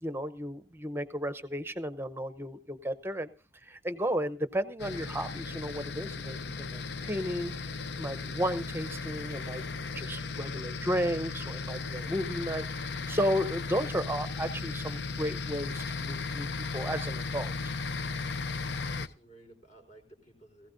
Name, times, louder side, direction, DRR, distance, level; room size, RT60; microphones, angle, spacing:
voice 1, 0.0-3.3 3.6-17.7, equal, 15° right, 11 dB, 0.7 m, -34 dB
sound 1, 4.8-19.1, left 4 dB, 80° left, 0.7 m, -36 dB
voice 2, 18.5-20.7, right 2 dB, 45° left, 3 dB, 4.1 m, -55 dB
19.0 x 16.0 x 2.6 m, 0.33 s
head